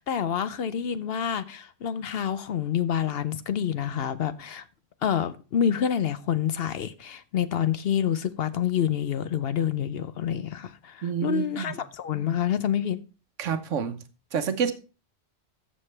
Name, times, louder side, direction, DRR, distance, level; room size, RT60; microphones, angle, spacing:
voice 1, 0.0-4.6 5.0-13.0, left 9 dB, 60° left, 0.8 m, -27 dB
voice 2, 11.0-11.6 13.4-14.0 14.3-14.7, right 7 dB, 85° right, 1.3 m, -27 dB
14.0 x 6.6 x 3.3 m
omnidirectional pair, 1.2 m